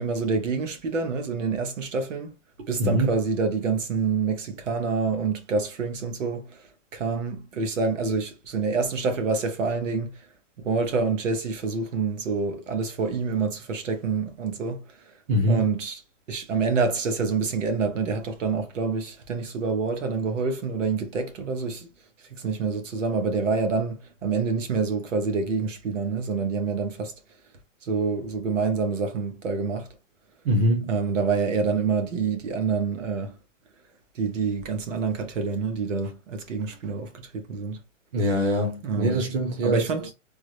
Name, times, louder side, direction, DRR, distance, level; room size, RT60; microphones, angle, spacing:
voice 1, 0.0-2.3 2.7-10.2 10.6-15.2 15.5-16.0 16.3-21.9 22.3-27.1 27.8-29.9 30.8-33.4 34.1-37.8 38.8-39.3 39.6-40.1, right 4 dB, 75° right, 1.1 m, -27 dB
voice 2, 2.8-3.1 15.3-15.6 30.4-30.9 38.1-39.9, equal, 45° right, 1.2 m, -23 dB
3.5 x 2.1 x 3.2 m
hypercardioid pair, 155°, 38 cm